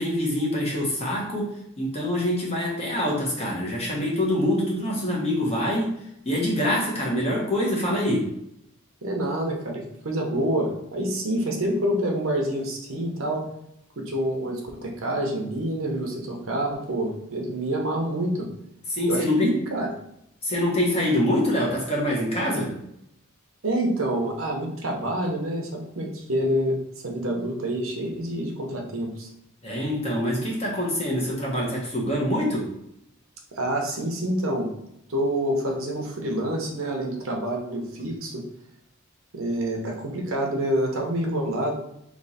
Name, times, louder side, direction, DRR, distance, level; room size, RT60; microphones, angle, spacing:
voice 1, 0.0-5.9 6.2-8.3 18.9-19.6 20.4-22.8 29.6-32.7, left 1 dB, 30° left, -3 dB, 1.1 m, -25 dB
voice 2, 9.0-13.5 14.0-18.5 19.1-19.9 23.6-26.8 27.0-29.3 33.5-34.7 35.1-38.4 39.3-41.7, right 1 dB, 70° right, 1 dB, 0.9 m, -27 dB
3.3 x 3.0 x 4.1 m, 0.77 s
head